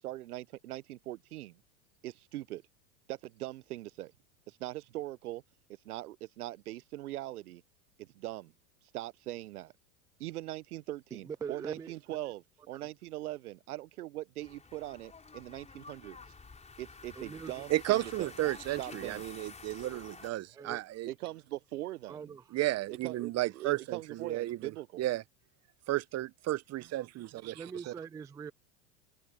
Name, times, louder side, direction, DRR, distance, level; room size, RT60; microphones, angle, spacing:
voice 1, 0.0-1.6 2.0-2.6 3.1-4.1 4.5-5.4 5.8-7.6 8.0-8.5 8.9-9.7 10.2-16.2 16.8-18.3 18.8-19.2 21.1-22.4 22.9-25.1, right 16 dB, 80° right, 0.9 m, -41 dB
voice 2, 11.1-11.9 12.7-12.8 17.2-17.5 20.5-20.8 22.1-22.4 27.4-28.5, right 6 dB, 10° right, 0.3 m, -42 dB
sound 1, 14.4-20.3, left 4 dB, 15° left, 4.7 m, -50 dB
voice 3, 17.7-21.1 22.5-25.2 25.9-27.9, right 16 dB, 35° right, 1.0 m, -33 dB
hypercardioid pair, 95°, 45 cm